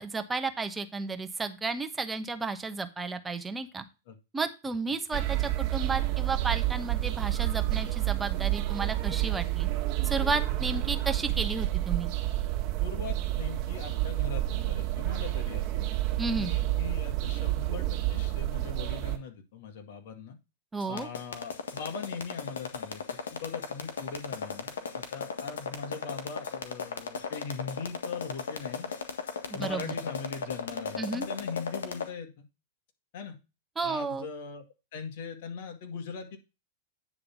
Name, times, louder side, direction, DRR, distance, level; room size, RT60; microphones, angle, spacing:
voice 1, 0.0-3.8 4.3-9.7 10.0-12.1 16.2-16.5 20.7-21.1 29.5-29.9 31.0-31.3 33.8-34.3, right 4 dB, 10° right, 8 dB, 1.1 m, -33 dB
sound 1, 5.1-19.2, right 16 dB, 45° right, 1.7 m, -29 dB
voice 2, 12.8-15.9 16.3-20.4 20.9-28.9 29.5-32.5 33.1-33.4 33.8-34.7 34.9-36.4, left 5 dB, 60° left, 6 dB, 2.2 m, -40 dB
sound 2, 20.8-32.1, left 5 dB, 85° left, 1.6 m, -35 dB
9.6 x 3.7 x 6.0 m, 0.28 s
hypercardioid pair, 120°, 0 cm